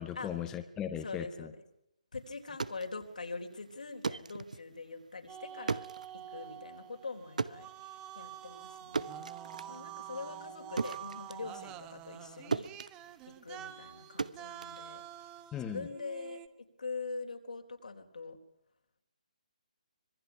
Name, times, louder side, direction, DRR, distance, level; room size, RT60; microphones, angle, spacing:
voice 1, 0.0-1.5 15.5-15.9, left 9 dB, 15° left, 6 dB, 1.2 m, -38 dB
voice 2, 1.0-1.5 2.1-5.9 6.3-9.3 9.7-12.7 13.4-15.0 15.6-16.4 16.8-18.4, left 4 dB, 80° left, 3 dB, 4.1 m, -43 dB
sound 1, 2.4-12.3 12.5-15.5, right 4 dB, 75° right, 1.0 m, -39 dB
sound 2, 5.3-16.5, right 11 dB, 15° right, 1.0 m, -47 dB
26.0 x 20.0 x 5.9 m, 0.80 s
hypercardioid pair, 150°, 4 cm